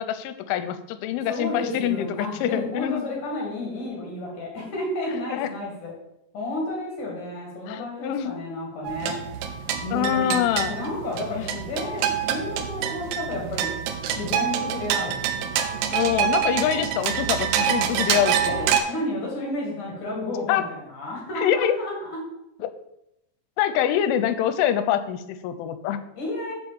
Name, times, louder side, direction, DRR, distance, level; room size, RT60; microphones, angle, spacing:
voice 1, 0.0-3.0 5.3-5.5 7.7-8.4 9.9-10.8 11.3-11.5 15.9-18.7 20.5-20.6 21.4-21.8 22.6-22.7 23.6-26.0, left 10 dB, 85° left, 11 dB, 3.0 m, -25 dB
voice 2, 1.3-5.9 6.3-9.2 9.8-13.7 14.1-15.5 18.5-22.2 26.2-26.5, left 1 dB, 50° left, -2 dB, 2.7 m, -31 dB
sound 1, 8.8-18.8, right 9 dB, 85° right, 3.3 m, -26 dB
7.6 x 5.0 x 7.0 m, 0.84 s
omnidirectional pair, 5.7 m